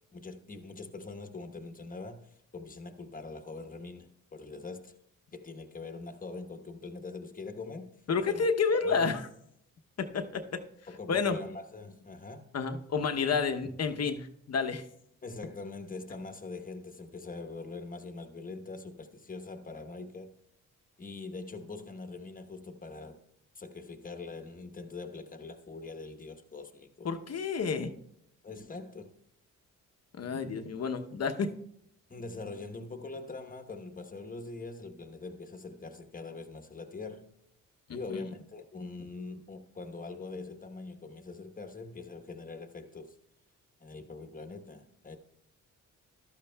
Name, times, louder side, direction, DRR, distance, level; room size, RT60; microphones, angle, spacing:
voice 1, 0.1-5.0 5.3-7.9 8.3-8.5 8.8-9.2 10.9-12.5 15.2-20.3 21.0-23.2 23.5-27.1 28.4-29.1 32.1-37.3 37.9-43.2 43.8-45.2, left 3 dB, 25° left, 1.1 m, -43 dB
voice 2, 8.1-9.3 10.0-10.6 11.1-11.4 12.5-14.8 27.0-28.0 30.2-31.6 37.9-38.0, left 5 dB, 50° left, 0.9 m, -30 dB
14.0 x 12.0 x 2.3 m
cardioid pair, 75°, 32 cm